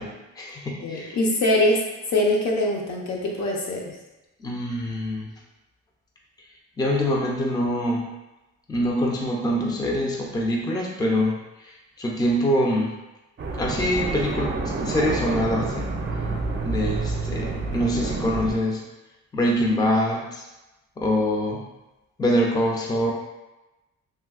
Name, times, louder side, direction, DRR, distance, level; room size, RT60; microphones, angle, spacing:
voice 1, 0.0-1.2 4.4-5.3 6.8-8.1 8.7-12.9 13.6-15.9 16.6-18.8 19.3-20.5 21.0-21.6 22.2-23.1, equal, 15° left, -1 dB, 0.5 m, -24 dB
voice 2, 0.8-1.8 2.1-4.0, left 1 dB, 65° left, -1 dB, 0.8 m, -23 dB
sound 1, 13.4-18.6, right 3 dB, 35° right, 0.5 m, -28 dB
3.4 x 2.7 x 2.4 m, 1.0 s
cardioid pair, 90°, 30 cm